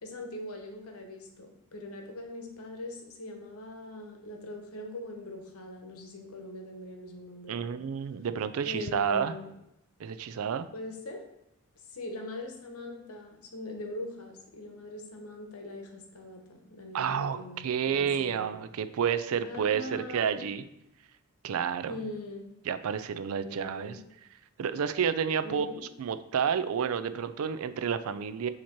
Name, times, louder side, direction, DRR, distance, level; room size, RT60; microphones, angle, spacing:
voice 1, 0.0-7.7 8.6-9.5 10.7-11.2 11.9-18.5 19.4-20.4 21.9-22.5 23.4-24.0 25.4-25.8, left 1 dB, 80° left, 3 dB, 1.0 m, -41 dB
voice 2, 7.5-9.3 10.0-10.7 16.9-17.4 17.6-20.6 21.4-21.9 22.7-24.0 24.6-25.7 26.0-28.5, right 7 dB, 75° right, 12 dB, 0.4 m, -30 dB
7.2 x 2.9 x 4.4 m, 0.84 s
head